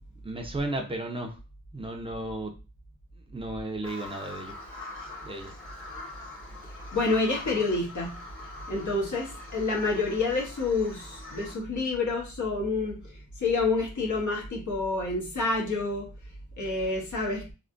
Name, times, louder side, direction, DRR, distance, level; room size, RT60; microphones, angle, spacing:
voice 1, 0.2-1.4 1.7-2.5 3.3-4.6 5.2-5.5, right 1 dB, 15° right, 3 dB, 0.7 m, -34 dB
Bird vocalization bird call bird song, 3.8-11.6, left 2 dB, 40° left, 1.2 m, -44 dB
voice 2, 6.9-8.2 8.7-16.1 16.6-17.5, left 3 dB, 60° left, -1 dB, 1.2 m, -28 dB
3.4 x 2.3 x 2.6 m, 0.31 s
wide cardioid pair, 85°, 34 cm